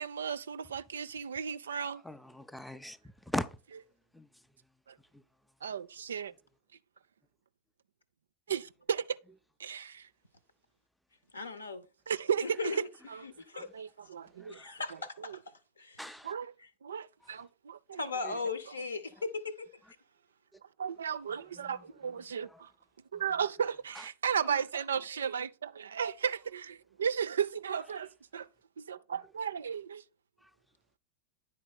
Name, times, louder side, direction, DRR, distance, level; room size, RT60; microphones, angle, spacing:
voice 1, 0.0-2.0 4.9-5.0 5.6-6.3 8.5-9.2 9.6-10.1 12.1-12.6 13.5-14.6 15.3-15.4 16.2-16.5 16.8-18.1 20.8-22.7 23.1-28.5 28.8-30.0, right 7 dB, 70° right, 0.3 m, -35 dB
voice 2, 2.0-3.0 3.3-3.6 4.1-4.3 5.1-5.2 14.4-14.7 16.0-16.3 18.2-18.3 21.5-21.8 22.5-22.6 23.9-24.0, left 1 dB, ahead, 0.4 m, -39 dB
voice 3, 11.3-11.8 12.4-12.9 13.2-13.7 14.5-15.4 15.8-16.0 16.6-16.7 18.0-19.8, left 3 dB, 75° left, 0.8 m, -37 dB
10.0 x 4.2 x 4.1 m
figure-of-eight pair, 90°, 0 cm